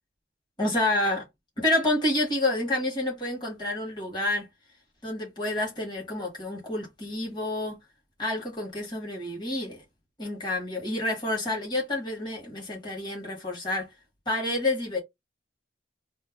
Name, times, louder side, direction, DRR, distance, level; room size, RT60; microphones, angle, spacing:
voice 1, 0.6-1.3 1.6-4.5 5.0-7.8 8.2-9.8 10.2-13.9 14.2-15.0, left 1 dB, 25° left, 1.3 m, -28 dB
2.6 x 2.1 x 3.4 m
head